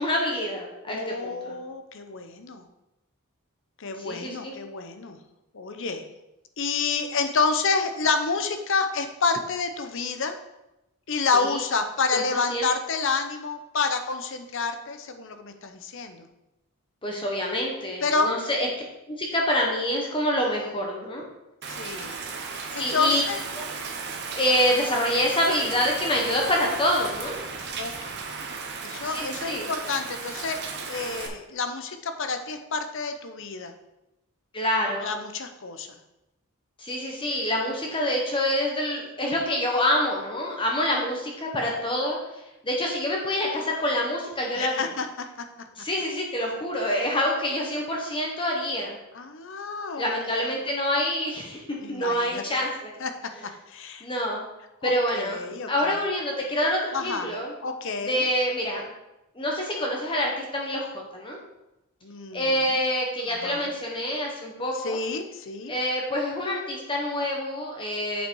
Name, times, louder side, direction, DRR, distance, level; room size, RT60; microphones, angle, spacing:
voice 1, 0.0-1.6 4.0-4.5 11.3-11.6 12.1-12.7 17.0-18.7 19.1-21.2 22.8-23.3 24.3-27.4 29.0-29.7 34.5-35.1 36.8-42.2 42.6-44.8 45.8-49.0 50.0-52.9 54.0-54.4 54.8-55.4 55.7-57.5 58.1-58.9 59.3-61.4 62.3-65.0 65.7-68.3, left 1 dB, 25° left, -1 dB, 1.1 m, -26 dB
voice 2, 0.9-2.6 3.8-5.2 5.5-6.0 6.6-10.4 11.1-16.3 18.0-18.3 21.7-22.2 22.7-23.4 27.8-28.5 28.8-30.6 30.9-33.7 35.0-35.9 44.6-45.1 49.1-50.5 51.8-52.6 53.0-53.1 53.4-54.1 54.8-55.9 56.9-57.3 57.6-58.2 62.0-62.5 63.3-63.7 64.8-65.7, left 4 dB, 60° left, 7 dB, 0.8 m, -29 dB
Rain, 21.6-31.3, right 5 dB, 50° right, 1.0 m, -35 dB
7.4 x 5.7 x 4.6 m, 0.93 s
head